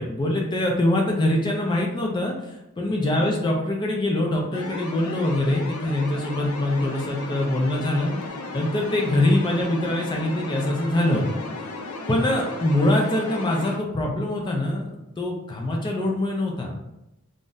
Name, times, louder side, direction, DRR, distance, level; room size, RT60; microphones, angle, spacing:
voice 1, 0.0-2.3 2.8-8.2 8.5-11.3 12.1-14.9 15.2-16.7, left 1 dB, 20° left, 0 dB, 0.3 m, -23 dB
sound 1, 4.5-13.8, left 3 dB, 85° left, 0.5 m, -35 dB
2.5 x 2.1 x 3.7 m, 0.90 s
head